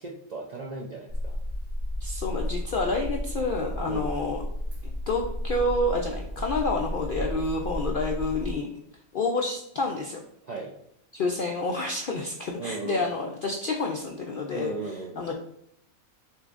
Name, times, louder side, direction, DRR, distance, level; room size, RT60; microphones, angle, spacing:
voice 1, 0.0-1.4 3.9-4.2 10.4-10.7 12.6-13.1 14.5-15.2, right 4 dB, 75° right, 0 dB, 0.3 m, -36 dB
sound 1, 1.1-8.5, equal, 55° right, 1.5 m, -33 dB
voice 2, 2.0-4.4 5.1-8.7 9.1-10.2 11.1-15.3, left 2 dB, 70° left, 1 dB, 0.5 m, -29 dB
6.3 x 3.2 x 2.5 m, 0.73 s
omnidirectional pair, 1.5 m